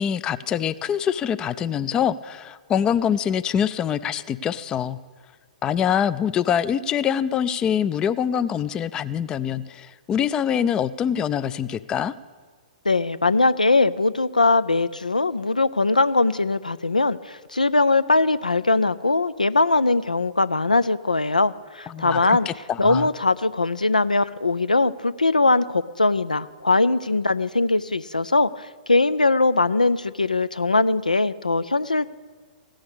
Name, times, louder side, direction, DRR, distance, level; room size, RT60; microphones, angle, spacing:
voice 1, 0.0-5.0 5.6-12.1 21.9-22.5 22.8-23.1, left 8 dB, 20° left, 15 dB, 0.3 m, -24 dB
voice 2, 12.8-22.5 22.8-32.1, left 3 dB, 85° left, 15 dB, 0.4 m, -21 dB
16.0 x 6.4 x 8.6 m, 1.5 s
figure-of-eight pair, 115°, 4 cm